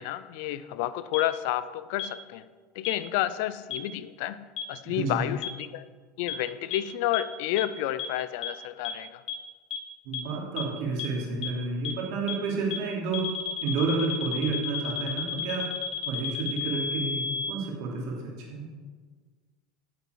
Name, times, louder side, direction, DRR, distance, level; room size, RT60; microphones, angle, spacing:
voice 1, 0.0-2.5 2.8-5.9 6.2-9.2, left 13 dB, 65° left, 15 dB, 0.5 m, -30 dB
sound 1, 1.1-1.2 2.0-2.1 2.8-2.9 3.7-3.8 4.6-4.7 5.4-5.5 6.3-6.4 6.7-6.8 7.1-7.2 7.6-7.7 8.0-8.1 8.4-8.5 8.8-8.9 9.3-9.4 9.7-9.8 10.1-10.2 10.6-10.7 11.0-11.1 11.4-11.5 11.8-11.9 12.3-12.4 12.7-12.8 13.1-17.5, left 8 dB, 50° left, 1.5 m, -32 dB
voice 2, 4.8-5.3 10.0-13.3 13.6-15.7 16.0-18.7, right 4 dB, 60° right, -1 dB, 2.9 m, -30 dB
9.9 x 7.0 x 6.5 m, 1.4 s
hypercardioid pair, 80°, 0 cm